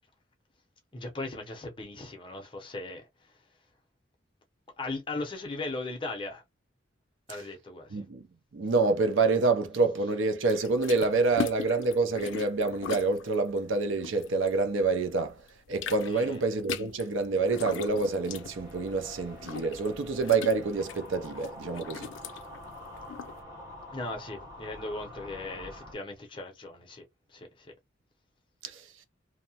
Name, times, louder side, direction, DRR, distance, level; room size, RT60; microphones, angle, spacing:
voice 1, 0.9-3.1 4.8-6.4 7.3-8.0 16.1-16.4 23.9-27.7, left 2 dB, 25° left, 0.6 m, -38 dB
voice 2, 7.9-8.2 8.5-15.4 15.7-22.1 28.6-28.9, right 3 dB, 80° right, 0.5 m, -27 dB
sound 1, 10.5-15.0 15.3-23.4, left 7 dB, 75° left, 0.4 m, -40 dB
sound 2, 17.3-25.9, left 1 dB, 15° right, 0.9 m, -46 dB
2.7 x 2.1 x 2.7 m
head